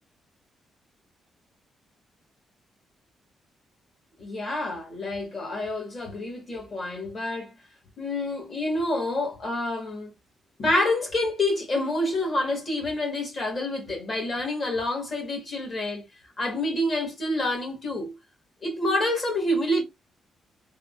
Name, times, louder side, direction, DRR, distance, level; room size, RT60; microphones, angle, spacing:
voice 1, 4.2-7.5 8.0-10.1 10.6-16.0 16.4-18.1 18.6-19.8, left 1 dB, 35° left, 1.4 m, -27 dB
3.5 x 2.1 x 2.4 m
cardioid pair, 155°, 0 cm